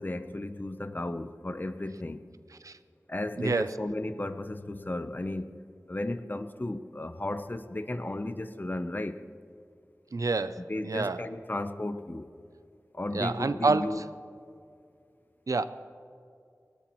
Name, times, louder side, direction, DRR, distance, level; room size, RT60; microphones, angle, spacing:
voice 1, 0.0-2.2 3.1-9.2 10.7-12.3 12.9-14.0, left 1 dB, 35° left, 0.7 m, -34 dB
voice 2, 3.4-3.7 10.1-11.2 13.1-14.1 15.5-15.6, right 3 dB, 75° right, 0.6 m, -28 dB
20.0 x 18.5 x 3.1 m
wide cardioid pair, 60°, 6 cm